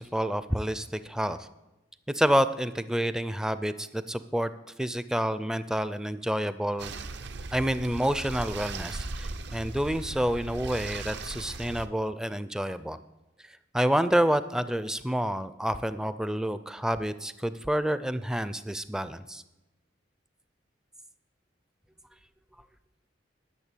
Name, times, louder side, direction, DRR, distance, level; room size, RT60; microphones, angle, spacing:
voice 1, 0.0-1.5 2.1-4.5 4.8-6.9 7.5-13.0 13.7-19.4, equal, 5° right, 13 dB, 0.4 m, -28 dB
sound 1, 6.8-11.9, right 3 dB, 65° right, 0.6 m, -38 dB
11.0 x 6.8 x 8.4 m, 0.99 s
head